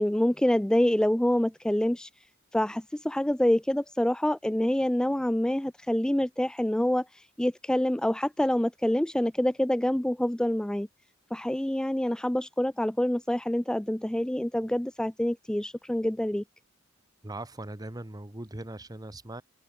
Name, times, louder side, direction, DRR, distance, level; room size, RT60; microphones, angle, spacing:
voice 1, 0.0-2.1 2.5-10.9 11.3-16.4, left 1 dB, 5° left, 0.3 m, -26 dB
voice 2, 17.2-19.4, right 1 dB, 20° right, 1.2 m, -40 dB
head